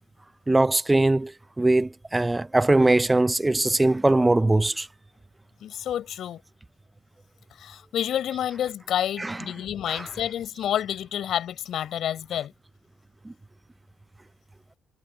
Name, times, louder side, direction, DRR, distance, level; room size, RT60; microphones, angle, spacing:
voice 1, 0.5-1.3 1.6-4.9 9.2-9.4 9.9-10.1 13.3-13.4, right 2 dB, 15° right, 0.4 m, -21 dB
voice 2, 5.6-6.4 7.6-12.5, left 10 dB, 70° left, 4.2 m, -29 dB
cardioid pair, 90°, 0 cm